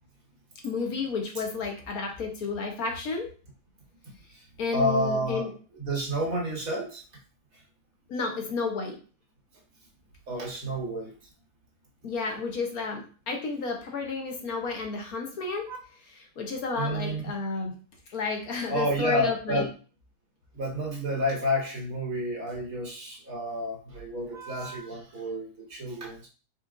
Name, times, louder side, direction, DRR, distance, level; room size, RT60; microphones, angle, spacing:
voice 1, 0.6-3.3 4.6-5.5 8.1-8.9 12.0-15.7 16.4-17.7 18.1-19.7, left 4 dB, 65° left, 2 dB, 1.3 m, -31 dB
voice 2, 4.7-5.5 5.8-7.0 10.3-11.1 15.7-15.8 16.8-17.2 18.7-19.7 20.5-26.3, equal, 55° right, -2 dB, 1.7 m, -30 dB
4.5 x 4.1 x 2.4 m, 0.38 s
omnidirectional pair, 1.7 m